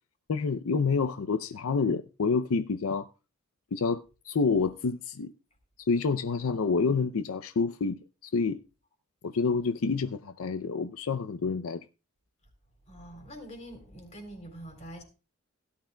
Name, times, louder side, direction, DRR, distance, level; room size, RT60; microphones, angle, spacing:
voice 1, 0.3-3.1 3.7-5.3 5.9-8.6 9.2-11.8, left 4 dB, 85° left, 0.5 m, -28 dB
voice 2, 12.9-15.0, right 1 dB, 35° left, 3.5 m, -45 dB
16.5 x 11.5 x 2.2 m
head